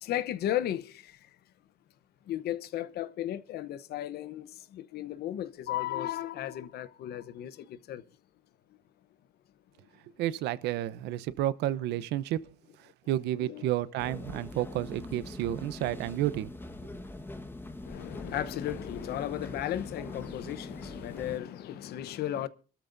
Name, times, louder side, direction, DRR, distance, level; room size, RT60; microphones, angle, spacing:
voice 1, 0.0-1.1 2.3-8.0 13.4-13.7 17.8-22.5, left 12 dB, 70° left, 1.0 m, -35 dB
voice 2, 10.2-12.4 12.8-16.5 16.8-16.9, right 13 dB, 85° right, 0.9 m, -31 dB
sound 1, 14.0-21.4, left 2 dB, 10° left, 1.4 m, -43 dB
27.5 x 13.0 x 2.6 m
cardioid pair, 110°, 17 cm